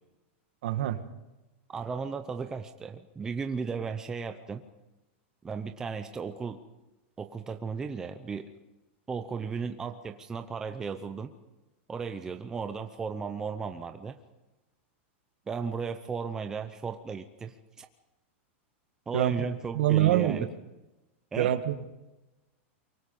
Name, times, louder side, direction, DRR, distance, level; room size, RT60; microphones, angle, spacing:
voice 1, 0.6-1.0 19.1-19.5 19.7-20.4 21.4-21.8, right 13 dB, 55° right, 10 dB, 1.6 m, -25 dB
voice 2, 1.7-4.6 5.4-6.6 7.2-8.5 9.1-11.3 11.9-14.2 15.5-17.9 19.1-20.5 21.3-21.5, right 5 dB, 10° right, 7 dB, 0.6 m, -35 dB
24.0 x 23.5 x 5.4 m, 1.0 s
supercardioid pair, 180°, 7 cm